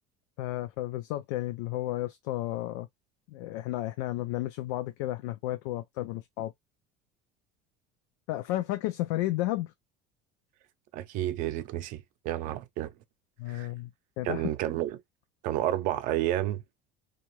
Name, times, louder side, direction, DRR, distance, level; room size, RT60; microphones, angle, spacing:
voice 1, 0.4-2.9 3.3-6.5 8.3-9.7 13.4-13.9 14.2-14.4, left 16 dB, 80° left, 0.4 m, -32 dB
voice 2, 10.9-12.9 13.5-13.7 14.2-15.0 15.4-16.6, right 13 dB, 60° right, 0.5 m, -30 dB
2.6 x 2.4 x 3.0 m
cardioid pair, 135°, 15 cm